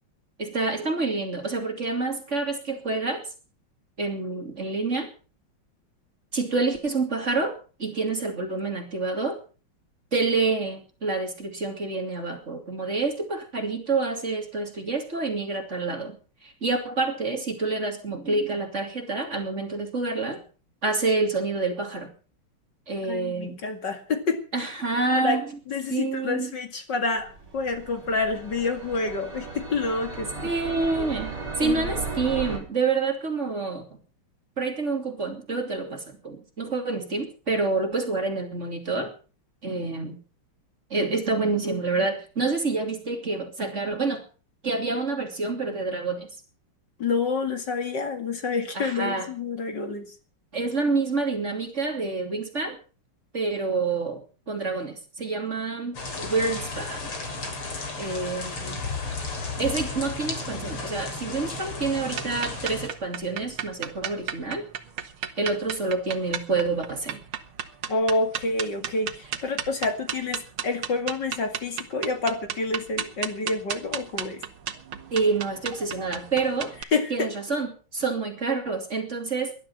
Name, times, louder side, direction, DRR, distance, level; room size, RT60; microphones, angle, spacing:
voice 1, 0.4-3.2 4.0-5.1 6.3-9.4 10.1-16.2 16.4-20.4 20.8-22.1 22.9-23.5 24.5-25.4 25.9-26.5 30.4-33.8 34.6-39.1 39.6-40.2 40.9-44.2 44.6-46.3 48.7-49.3 50.5-52.8 53.3-54.2 54.5-57.1 58.0-58.8 59.6-64.6 65.4-67.2 75.1-76.7 77.1-79.5, right 3 dB, 30° right, 4 dB, 3.1 m, -27 dB
voice 2, 23.1-24.4 25.1-25.4 25.7-30.3 31.6-32.0 47.0-50.1 67.9-74.4 76.9-77.3, left 3 dB, 55° left, 7 dB, 2.8 m, -28 dB
sound 1, 27.2-32.6, right 4 dB, 50° right, 4.6 m, -36 dB
sound 2, 55.9-62.9, left 3 dB, 85° left, 4.6 m, -34 dB
sound 3, 62.1-76.8, right 9 dB, 75° right, 2.2 m, -34 dB
19.5 x 12.0 x 5.8 m, 0.38 s
omnidirectional pair, 2.4 m